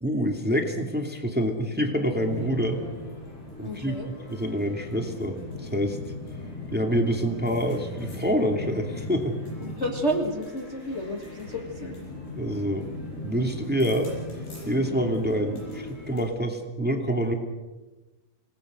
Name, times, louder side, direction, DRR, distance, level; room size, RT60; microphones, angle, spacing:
voice 1, 0.0-2.8 3.6-6.0 6.7-9.4 12.3-12.9 13.2-14.1 14.6-17.3, equal, 5° right, 3 dB, 1.5 m, -27 dB
sound 1, 2.1-16.2, left 2 dB, 90° left, 10.0 m, -38 dB
voice 2, 3.6-4.1 9.6-12.0, equal, 60° left, 0 dB, 0.7 m, -30 dB
28.0 x 19.5 x 6.3 m, 1.1 s
omnidirectional pair, 4.5 m